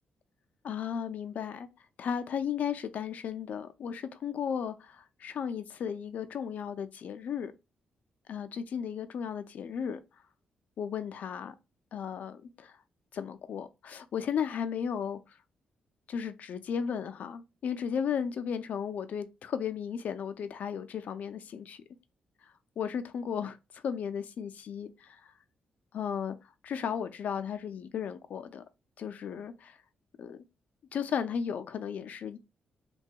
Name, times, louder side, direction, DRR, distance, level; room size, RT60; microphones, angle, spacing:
voice 1, 0.6-1.7 2.0-7.5 8.3-10.0 10.8-11.5 11.9-12.8 13.1-15.2 16.1-21.8 22.8-25.3 25.9-26.4 26.6-28.6 29.0-29.8 30.2-30.4 30.9-32.4, left 7 dB, 55° left, 0.4 m, -35 dB
3.2 x 2.2 x 2.7 m
wide cardioid pair, 175°, 3 cm